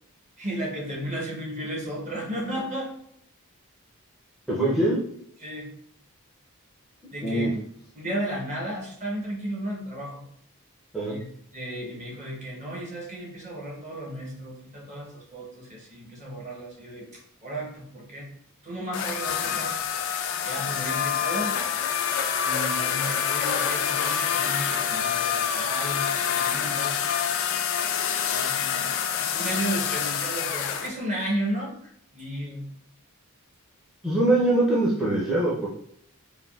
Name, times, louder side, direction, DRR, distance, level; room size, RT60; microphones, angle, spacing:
voice 1, 0.4-2.9 5.4-5.7 7.1-7.5 8.0-10.2 11.1-11.2 11.5-18.3 18.6-19.8 20.4-21.5 22.4-26.1 26.3-27.0 28.3-28.8 29.1-31.7 32.1-32.6, right 1 dB, 35° right, -3 dB, 0.8 m, -34 dB
voice 2, 4.5-5.0 7.2-7.5 10.9-11.1 34.0-35.7, right 1 dB, ahead, -7 dB, 0.5 m, -23 dB
sound 1, 18.9-30.9, left 8 dB, 60° left, 0.3 m, -27 dB
3.4 x 2.2 x 2.3 m, 0.68 s
head